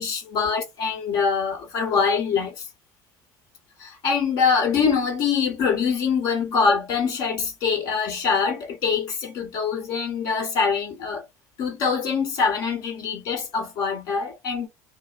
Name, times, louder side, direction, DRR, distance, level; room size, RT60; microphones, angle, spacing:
voice 1, 0.0-2.7 3.8-11.2 11.6-14.7, left 5 dB, 60° left, 1.2 m, -24 dB
2.6 x 2.1 x 2.5 m
hypercardioid pair, 75°, 7 cm